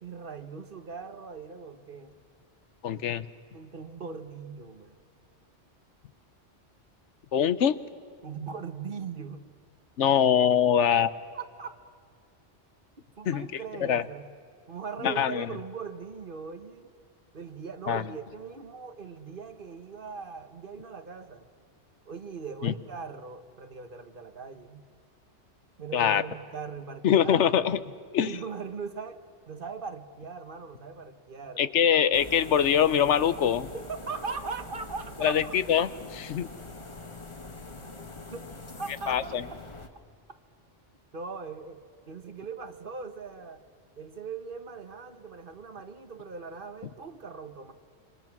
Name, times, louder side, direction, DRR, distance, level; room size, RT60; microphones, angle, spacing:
voice 1, 0.0-2.2 3.5-5.0 8.2-9.4 11.3-11.7 13.2-14.3 14.7-16.9 17.3-21.5 22.1-24.8 25.8-27.7 28.2-31.7 33.7-35.5 38.3-38.4 38.8-39.3 41.1-43.6 44.0-47.7, right 5 dB, 50° right, 8 dB, 1.4 m, -40 dB
voice 2, 2.8-3.3 7.3-7.8 10.0-11.1 13.3-13.5 13.8-14.0 15.0-15.5 17.9-18.0 22.6-22.7 25.9-26.2 27.0-27.8 28.1-28.4 31.6-33.7 35.2-36.5 39.1-39.4, left 9 dB, 80° left, 14 dB, 1.1 m, -23 dB
sound 1, 32.1-39.9, left 2 dB, 25° left, 1.4 m, -44 dB
27.0 x 25.0 x 6.0 m, 2.2 s
omnidirectional pair, 1.2 m